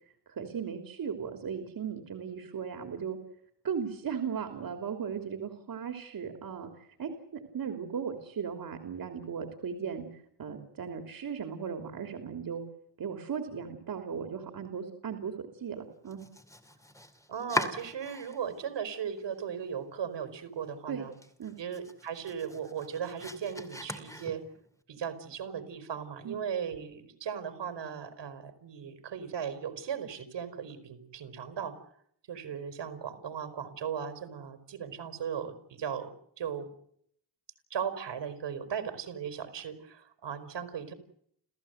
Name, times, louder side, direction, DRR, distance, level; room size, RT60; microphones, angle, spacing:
voice 1, 0.4-3.2 3.6-6.7 7.0-10.0 10.4-12.6 13.0-16.2 20.9-21.1 21.4-21.6 26.2-26.3, right 7 dB, 55° right, 6 dB, 3.2 m, -37 dB
Domestic sounds home sounds, 16.0-18.6 18.9-19.7 20.0-20.1 20.6-20.7 21.0-24.7, left 1 dB, 5° left, 2.5 m, -40 dB
voice 2, 17.3-21.1 21.6-24.4 24.9-31.7 32.3-36.7 37.7-40.9, right 7 dB, 80° right, 8 dB, 4.4 m, -37 dB
30.0 x 15.0 x 8.0 m, 0.68 s
wide cardioid pair, 145°, 43 cm